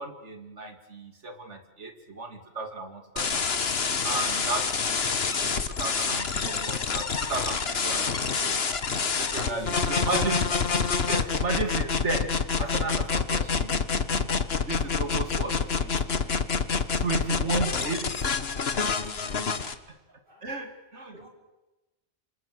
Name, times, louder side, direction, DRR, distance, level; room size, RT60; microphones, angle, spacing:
voice 1, 0.0-3.6 4.0-8.6 9.2-10.5 11.0-14.3 14.7-16.4 17.0-18.3 20.4-21.2, right 3 dB, 75° right, 7 dB, 2.8 m, -34 dB
sound 1, 3.2-19.7, left 5 dB, 60° left, 1.6 m, -27 dB
voice 2, 9.2-10.0 15.2-15.7 16.7-17.1 19.3-19.8 20.1-20.5 21.1-21.3, equal, 45° right, 1 dB, 5.5 m, -48 dB
27.0 x 27.0 x 7.7 m, 1.0 s
omnidirectional pair, 1.2 m